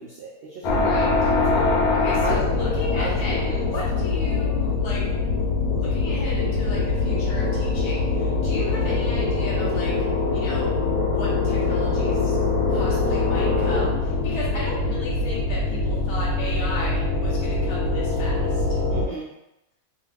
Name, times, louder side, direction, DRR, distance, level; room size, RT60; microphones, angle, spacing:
voice 1, 0.0-1.8 2.2-2.5 2.9-3.7 18.9-19.3, right 3 dB, 75° right, -5 dB, 0.5 m, -34 dB
sound 1, 0.6-19.1, left 3 dB, 75° left, 1.0 m, -23 dB
voice 2, 0.8-1.1 2.0-5.1 5.8-12.4 12.7-18.8, left 2 dB, 30° left, -6 dB, 0.5 m, -35 dB
2.6 x 2.4 x 3.3 m, 0.88 s
omnidirectional pair, 1.7 m